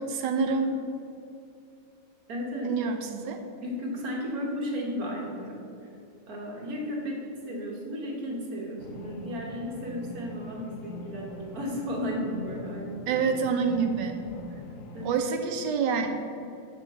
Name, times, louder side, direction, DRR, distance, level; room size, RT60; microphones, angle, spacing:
voice 1, 0.1-0.8 2.6-3.4 13.1-14.2 15.0-16.1, right 5 dB, 75° right, 6 dB, 1.3 m, -27 dB
voice 2, 2.3-2.8 3.6-5.6 6.3-13.2 14.9-15.2, equal, 55° right, -1 dB, 1.6 m, -34 dB
sound 1, 8.8-15.2, left 2 dB, 85° left, 0.7 m, -43 dB
7.1 x 3.8 x 6.4 m, 2.6 s
omnidirectional pair, 2.0 m